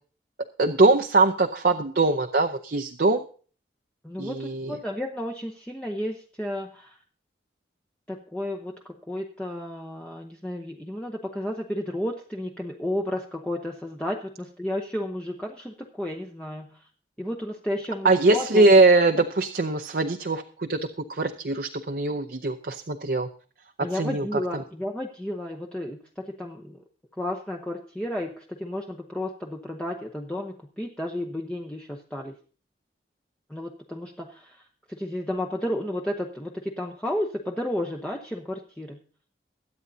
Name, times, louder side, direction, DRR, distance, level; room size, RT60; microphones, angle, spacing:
voice 1, 0.6-3.2 4.2-4.8 18.0-20.8 21.1-23.3 23.9-24.6, right 3 dB, 55° right, 5 dB, 0.7 m, -22 dB
voice 2, 4.0-7.0 8.1-16.9 17.2-18.7 23.8-26.8 27.2-32.3 33.5-39.0, left 1 dB, 5° left, 1 dB, 0.8 m, -32 dB
22.5 x 8.7 x 2.7 m, 0.41 s
head